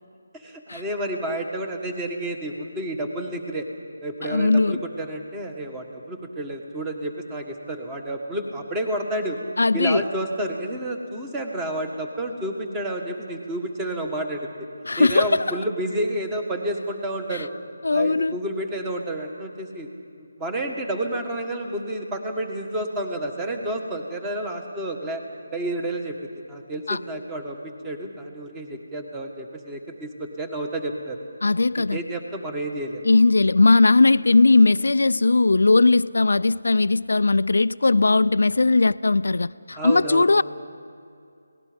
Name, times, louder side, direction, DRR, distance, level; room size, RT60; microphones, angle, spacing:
voice 1, 0.3-3.7 4.0-9.4 9.7-14.5 15.0-17.5 17.9-19.9 20.4-25.2 25.5-26.1 26.5-31.2 31.8-33.0 39.7-40.3, right 1 dB, 10° right, 1.6 m, -30 dB
voice 2, 4.3-4.8 9.6-10.0 14.9-15.3 17.8-18.3 26.9-27.0 31.4-32.0 33.1-40.4, left 3 dB, 80° left, 0.4 m, -18 dB
29.5 x 19.0 x 5.2 m
figure-of-eight pair, 170°, 0 cm